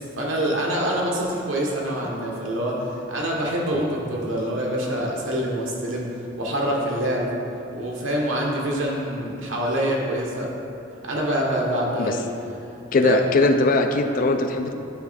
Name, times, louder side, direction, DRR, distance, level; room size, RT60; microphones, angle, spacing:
voice 1, 0.2-6.1 6.4-7.3 7.7-10.5 11.1-12.3 12.9-13.2 14.1-14.2, right 1 dB, 85° right, -2 dB, 1.2 m, -25 dB
voice 2, 12.9-14.7, left 2 dB, 45° left, 6 dB, 0.4 m, -20 dB
9.4 x 3.2 x 4.1 m, 2.7 s
head